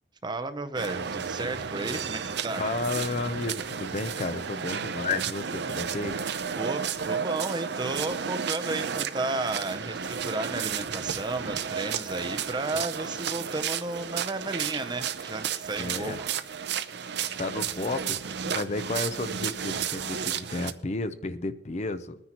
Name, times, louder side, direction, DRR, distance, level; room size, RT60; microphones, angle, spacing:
voice 1, 0.2-2.7 6.6-16.3, right 2 dB, 25° right, 10 dB, 0.6 m, -33 dB
sound 1, 0.8-20.7, right 7 dB, 60° right, 0.6 m, -32 dB
voice 2, 2.6-6.2 15.8-16.2 17.4-22.2, left 3 dB, 40° left, 11 dB, 0.6 m, -32 dB
21.5 x 9.7 x 3.0 m, 0.84 s
head